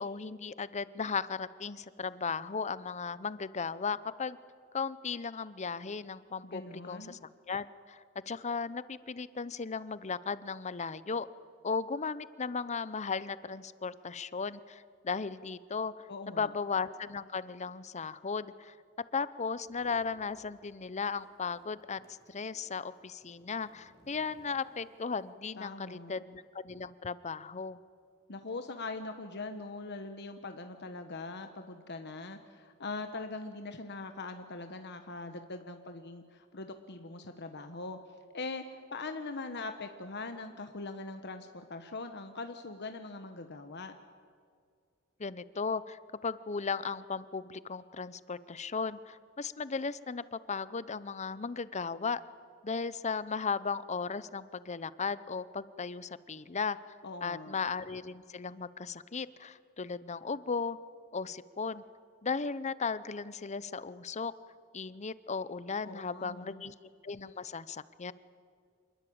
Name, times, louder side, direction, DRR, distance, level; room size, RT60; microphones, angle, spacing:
voice 1, 0.0-4.4 4.7-7.2 7.5-8.0 8.3-11.3 11.6-18.7 19.1-22.0 22.3-27.8 45.2-52.2 52.6-56.8 57.2-60.8 61.1-61.8 62.2-64.3 64.7-66.7 67.0-68.1, left 5 dB, 35° left, 16 dB, 0.7 m, -36 dB
voice 2, 6.4-7.2 16.1-16.5 25.6-26.2 28.3-38.0 38.3-43.9 57.0-57.6 65.8-66.7, left 3 dB, 55° left, 7 dB, 1.2 m, -42 dB
sound 1, 19.5-20.8 21.0-25.4, left 1 dB, 20° left, 2.8 m, -63 dB
27.0 x 21.0 x 8.7 m, 2.2 s
head